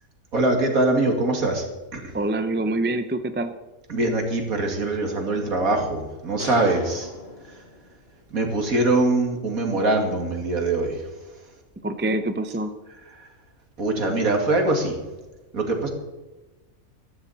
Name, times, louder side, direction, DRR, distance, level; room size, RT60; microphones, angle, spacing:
voice 1, 0.3-1.6 1.9-2.1 3.9-7.1 8.3-11.0 13.8-15.0 15.5-15.9, right 2 dB, 70° right, 3 dB, 2.8 m, -23 dB
voice 2, 2.1-3.5 11.8-12.7, right 2 dB, 10° right, 9 dB, 0.5 m, -25 dB
sound 1, 6.4-8.2, left 2 dB, 45° left, 1.6 m, -38 dB
15.0 x 14.0 x 4.2 m, 1.1 s
omnidirectional pair, 1.6 m